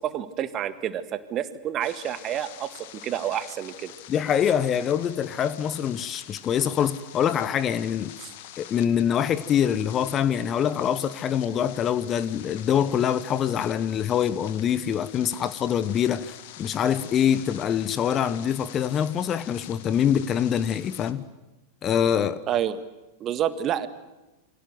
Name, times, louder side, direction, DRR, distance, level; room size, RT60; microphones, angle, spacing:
voice 1, 0.0-3.9 8.2-8.3 22.5-22.8 23.2-23.9, right 10 dB, 30° right, 1.8 m, -29 dB
sound 1, 1.8-21.1, left 12 dB, 50° left, 2.0 m, -46 dB
voice 2, 4.1-8.1 8.6-21.2 21.8-22.4, left 9 dB, 30° left, 1.3 m, -24 dB
29.0 x 25.0 x 7.9 m
figure-of-eight pair, 90°, 0 cm